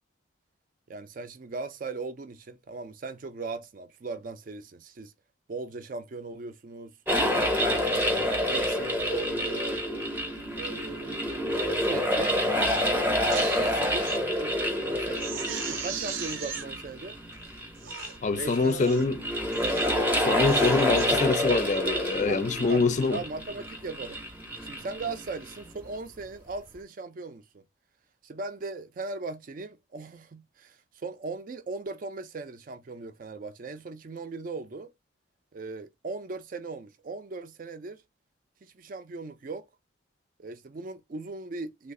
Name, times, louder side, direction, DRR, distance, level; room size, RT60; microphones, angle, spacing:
voice 1, 0.9-5.1 5.5-7.0 7.7-9.8 10.5-12.4 13.2-17.2 18.3-19.0 22.3-22.4 22.7-24.2 24.6-27.6 28.2-34.9 35.5-38.0 38.6-39.7 40.4-41.9, right 3 dB, 45° right, 0.4 m, -38 dB
sound 1, 7.1-25.7, equal, 10° right, 0.7 m, -28 dB
Crying sobbing, 13.1-14.2 14.6-14.7 15.1-16.7 17.3-17.4 17.8-18.2 18.7-19.1 19.5-19.9 20.3-21.1 21.5-21.8, right 7 dB, 85° right, 0.6 m, -39 dB
voice 2, 18.2-19.2 20.2-23.2, left 3 dB, 35° left, 0.4 m, -25 dB
3.2 x 2.4 x 3.6 m
head